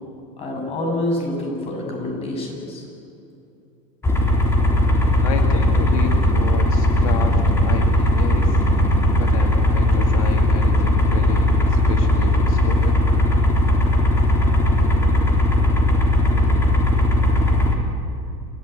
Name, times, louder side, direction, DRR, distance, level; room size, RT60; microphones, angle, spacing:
voice 1, 0.4-2.8, left 1 dB, 35° left, 1 dB, 7.1 m, -26 dB
sound 1, 4.0-17.7, left 1 dB, 15° left, 3.6 m, -17 dB
voice 2, 5.2-8.6 9.2-13.0, left 7 dB, 90° left, 4 dB, 2.0 m, -32 dB
28.0 x 15.5 x 9.2 m, 2.7 s
supercardioid pair, 135°, 17 cm